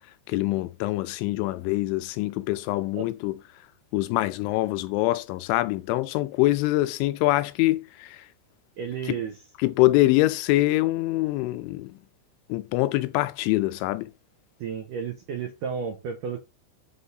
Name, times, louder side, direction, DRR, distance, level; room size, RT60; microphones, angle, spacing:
voice 1, 0.3-3.4 3.9-8.2 9.1-9.2 9.6-11.9 12.5-14.1, left 18 dB, 85° left, 2.8 m, -24 dB
voice 2, 8.8-9.3 14.6-16.4, right 6 dB, 90° right, 1.8 m, -32 dB
8.0 x 4.1 x 3.9 m
omnidirectional pair, 5.5 m